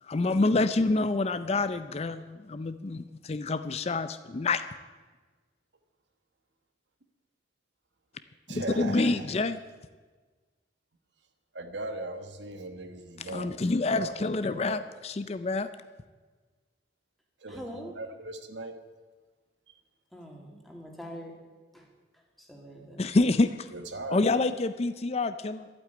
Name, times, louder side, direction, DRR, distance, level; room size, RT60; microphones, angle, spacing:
voice 1, 0.0-4.6 8.5-9.6 13.2-15.7 23.0-23.7 24.1-25.7, left 3 dB, 35° left, 0.5 m, -27 dB
voice 2, 8.5-9.2 11.5-13.5 13.9-14.1 14.5-14.9 17.4-18.8 19.7-19.8 23.7-24.3, right 2 dB, 80° right, 1.3 m, -38 dB
voice 3, 17.5-17.9 20.1-21.4 21.7-21.9 22.1-23.1, equal, ahead, 2.3 m, -44 dB
12.0 x 8.6 x 9.3 m
head